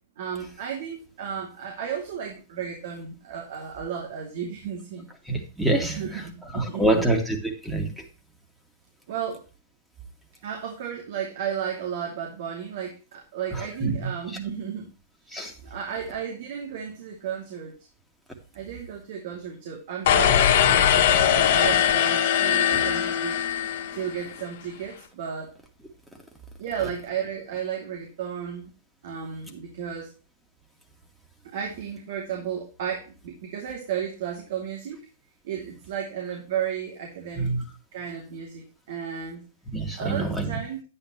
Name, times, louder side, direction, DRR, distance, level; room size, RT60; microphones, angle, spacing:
voice 1, 0.2-5.1 5.8-7.1 9.1-9.4 10.4-14.9 15.6-17.7 18.5-23.4 23.9-25.5 26.6-28.7 29.0-30.1 31.5-35.0 35.4-37.5 37.9-39.4 40.0-40.8, right 8 dB, 60° right, 0 dB, 2.7 m, -33 dB
voice 2, 5.3-6.3 6.5-8.1 13.5-14.0 14.3-14.4 15.3-15.5 22.7-22.8 37.4-37.6 39.7-40.6, right 2 dB, 5° right, 3 dB, 2.3 m, -26 dB
sound 1, 20.1-24.3, left 9 dB, 60° left, 1.9 m, -21 dB
10.0 x 9.5 x 3.1 m, 0.34 s
hypercardioid pair, 115°, 0 cm